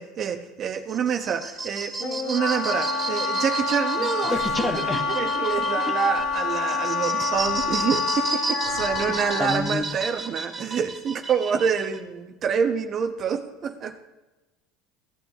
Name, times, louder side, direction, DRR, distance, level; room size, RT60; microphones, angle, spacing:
voice 1, 0.0-4.4 4.9-14.0, right 7 dB, 45° right, 6 dB, 1.0 m, -27 dB
sound 1, 0.7-12.0, right 3 dB, 25° right, 2.6 m, -33 dB
Wind instrument woodwind instrument, 2.0-9.6, left 4 dB, 55° left, 1.8 m, -27 dB
voice 2, 4.0-5.0 8.7-10.0, left 2 dB, 20° left, 5 dB, 1.3 m, -30 dB
sound 2, 4.3-6.7 7.3-10.4 10.8-11.3, equal, 80° left, 2.6 m, -46 dB
17.0 x 10.0 x 2.9 m, 1.1 s
hypercardioid pair, 90°, 0 cm